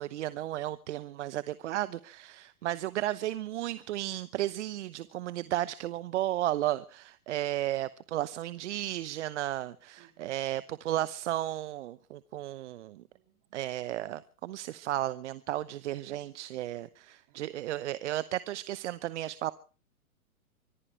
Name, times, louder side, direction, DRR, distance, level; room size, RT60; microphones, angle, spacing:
voice 1, 0.0-13.0 13.5-19.5, right 14 dB, 55° right, 0.9 m, -34 dB
voice 2, 10.0-10.3 13.1-13.6 16.0-16.4 17.3-17.6, right 15 dB, 35° right, 2.4 m, -60 dB
25.0 x 15.0 x 3.2 m
hypercardioid pair, 130°, 43 cm